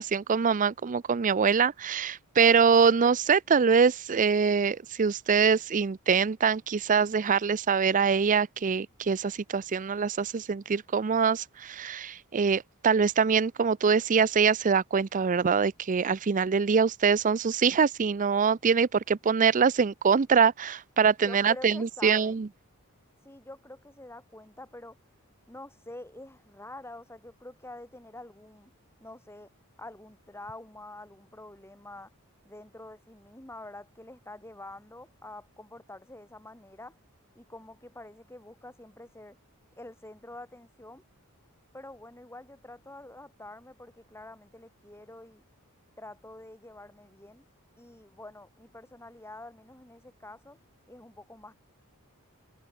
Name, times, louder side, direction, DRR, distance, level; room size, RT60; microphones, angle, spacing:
voice 1, 0.0-22.5, right 6 dB, 35° right, 0.5 m, -24 dB
voice 2, 21.2-22.4 23.2-25.0 25.5-28.7 29.0-29.5 29.8-32.1 32.4-37.0 37.3-39.4 39.8-41.0 41.7-45.4 46.0-47.4 47.8-50.6 50.9-51.5, left 2 dB, 10° left, 3.3 m, -46 dB
head